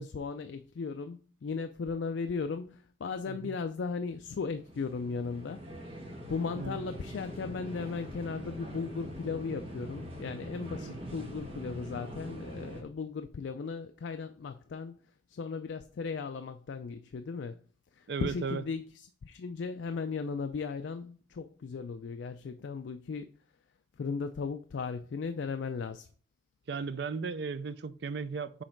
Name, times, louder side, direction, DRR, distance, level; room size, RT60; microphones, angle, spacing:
voice 1, 0.0-5.6 6.3-15.0 15.3-17.6 18.0-23.3 24.0-26.1, left 5 dB, 65° left, 0.4 m, -36 dB
sound 1, 4.2-12.8, equal, 30° right, 1.3 m, -43 dB
voice 2, 6.6-6.9 10.8-11.1 18.1-18.6 26.7-28.6, right 5 dB, 55° right, 0.4 m, -36 dB
6.4 x 3.9 x 4.5 m
head